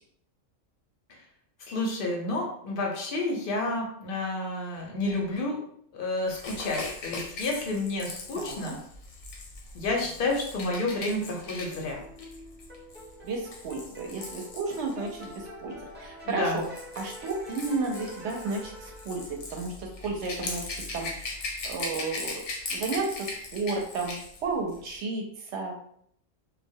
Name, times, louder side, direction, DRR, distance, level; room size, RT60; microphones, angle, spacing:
voice 1, 1.7-5.6 5.9-8.8 9.7-12.0 16.2-16.6, left 2 dB, 60° left, 0 dB, 0.6 m, -30 dB
Rattle / Rattle (instrument), 6.3-15.4 16.3-24.4 24.7-24.9, left 3 dB, 85° left, 1.0 m, -39 dB
voice 2, 8.3-8.7 13.2-16.7 17.0-20.7 20.9-21.3 21.6-22.4 22.7-24.2 24.4-25.8, right 3 dB, 65° right, 1 dB, 0.8 m, -32 dB
sound 1, 10.7-19.6, equal, 10° right, 0.6 m, -46 dB
2.2 x 2.1 x 2.6 m, 0.65 s
omnidirectional pair, 1.3 m